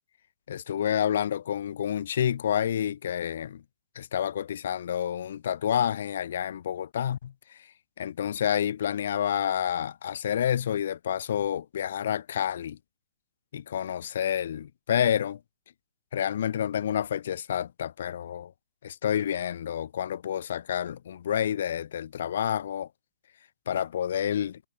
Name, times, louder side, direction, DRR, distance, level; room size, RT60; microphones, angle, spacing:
voice 1, 0.5-3.6 4.0-7.6 8.0-12.8 13.5-15.4 16.1-18.5 18.8-22.9 23.7-24.6, left 9 dB, 55° left, 3.6 m, -29 dB
hypercardioid pair, 175°, 0 cm